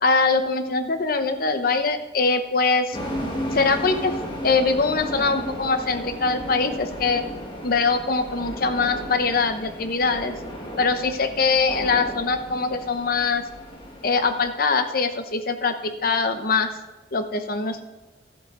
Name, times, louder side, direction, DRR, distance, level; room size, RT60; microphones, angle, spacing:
voice 1, 0.0-3.0 3.5-4.1 4.4-7.2 7.6-10.3 10.8-13.4 14.0-16.7 17.1-17.8, left 4 dB, 50° left, 8 dB, 0.8 m, -22 dB
sound 1, 2.9-14.5, equal, 25° left, 1.5 m, -34 dB
12.0 x 7.9 x 3.8 m, 1.2 s
head